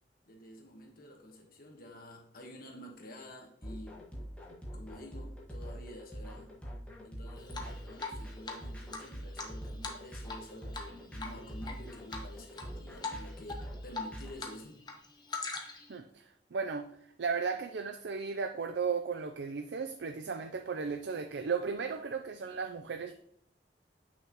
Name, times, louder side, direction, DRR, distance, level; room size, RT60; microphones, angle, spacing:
voice 1, 0.3-4.0 4.7-6.5 7.0-14.8, left 1 dB, 55° left, 1.3 m, -49 dB
sound 1, 3.6-14.3, equal, 5° left, 1.5 m, -44 dB
Drip, 7.5-8.2 8.5-8.6 8.9-10.5 10.7-10.9 11.2-11.7 12.1-12.7 13.0-13.2 13.5-14.5 14.8-15.9, left 4 dB, 25° left, 1.0 m, -40 dB
voice 2, 15.9-16.9 17.2-23.1, right 5 dB, 75° right, 0.5 m, -35 dB
8.5 x 6.0 x 3.0 m
head